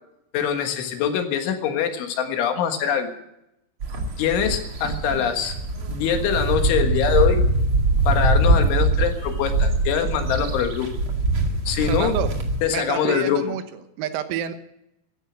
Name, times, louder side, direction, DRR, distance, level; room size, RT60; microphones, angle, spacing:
voice 1, 0.3-3.1 4.2-5.6 5.9-7.4 8.1-10.9 11.7-12.1 12.6-13.4, left 8 dB, 70° left, 6 dB, 3.8 m, -23 dB
sound 1, 3.8-12.6, right 2 dB, 60° right, 1.3 m, -22 dB
voice 2, 11.9-12.3 12.7-14.5, right 10 dB, 85° right, 9 dB, 3.9 m, -28 dB
15.0 x 12.5 x 7.3 m, 0.82 s
omnidirectional pair, 6.0 m